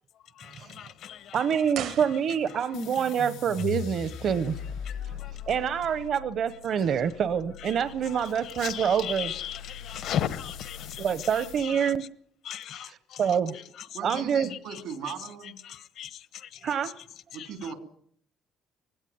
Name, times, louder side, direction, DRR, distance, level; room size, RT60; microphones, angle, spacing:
voice 1, 0.4-1.4 4.9-5.3 7.6-11.9 12.4-13.4 14.1-14.8 15.6-16.8 17.4-17.5, left 10 dB, 70° left, 1.0 m, -37 dB
voice 2, 1.3-4.6 5.1-5.2 5.5-9.3 11.0-12.0 12.7-13.5 14.0-14.5 16.6-16.9, right 7 dB, 50° right, 0.8 m, -26 dB
sound 1, 1.7-2.8 3.1-3.2, right 10 dB, 75° right, 1.1 m, -38 dB
sound 2, 2.7-11.6, left 8 dB, 90° left, 4.8 m, -41 dB
voice 3, 13.9-15.6 17.3-17.7, right 6 dB, 90° right, 3.5 m, -38 dB
19.5 x 16.5 x 9.4 m
cardioid pair, 145°, 0 cm